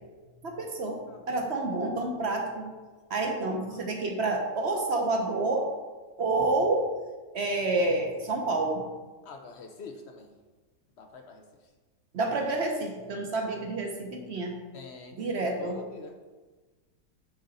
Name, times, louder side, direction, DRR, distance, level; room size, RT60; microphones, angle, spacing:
voice 1, 0.4-1.0 1.3-2.7 3.1-5.7 6.2-6.9 7.3-8.8 12.1-14.5 15.2-15.8, right 2 dB, 50° right, 2 dB, 0.9 m, -28 dB
voice 2, 1.1-1.5 3.1-3.4 3.7-3.9 9.2-10.3 11.0-11.4 14.7-16.2, left 4 dB, 65° left, 4 dB, 0.6 m, -46 dB
9.4 x 3.8 x 4.0 m, 1.3 s
omnidirectional pair, 1.7 m